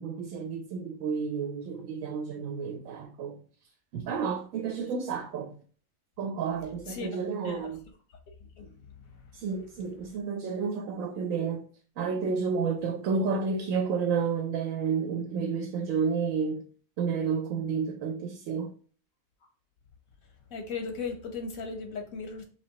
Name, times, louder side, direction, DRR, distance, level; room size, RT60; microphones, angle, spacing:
voice 1, 0.0-3.4 3.9-5.6 6.2-7.8 9.3-11.7 12.0-16.6 17.0-18.7, right 5 dB, 80° right, 1.0 m, -31 dB
voice 2, 6.9-7.7 8.6-8.9 20.5-22.4, left 4 dB, 90° left, 1.4 m, -37 dB
4.8 x 3.0 x 2.8 m
omnidirectional pair, 1.4 m